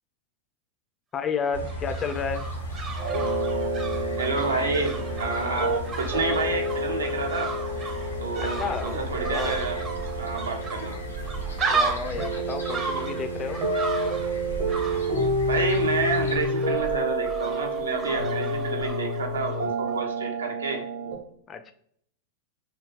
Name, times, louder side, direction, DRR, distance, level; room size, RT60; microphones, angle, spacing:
voice 1, 1.1-2.5 8.4-9.7 11.7-13.6 21.5-21.7, left 5 dB, 25° left, 9 dB, 0.3 m, -31 dB
sound 1, 1.4-19.6 19.9-20.0, right 4 dB, 25° right, 0.6 m, -35 dB
sound 2, 1.5-16.4, left 1 dB, 80° left, 0.7 m, -36 dB
sound 3, 3.0-21.2, right 1 dB, 60° right, 1.0 m, -29 dB
voice 2, 4.2-7.5 8.2-9.8 10.2-11.0 15.4-20.8, right 3 dB, 75° right, 2 dB, 0.6 m, -29 dB
3.4 x 2.3 x 3.0 m, 0.67 s
figure-of-eight pair, 90°, 0 cm